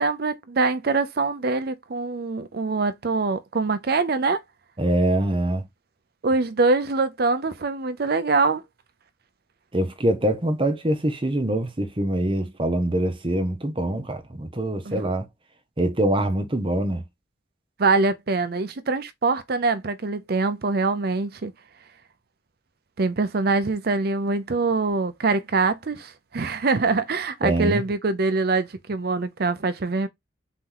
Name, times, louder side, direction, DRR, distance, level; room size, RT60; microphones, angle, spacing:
voice 1, 0.0-4.4 6.2-8.6 14.9-15.1 17.8-21.5 23.0-30.1, right 3 dB, 55° right, 0.6 m, -24 dB
voice 2, 4.8-5.7 9.7-15.3 15.8-17.0 27.4-27.8, right 1 dB, 30° right, 0.8 m, -24 dB
4.1 x 3.0 x 3.8 m
head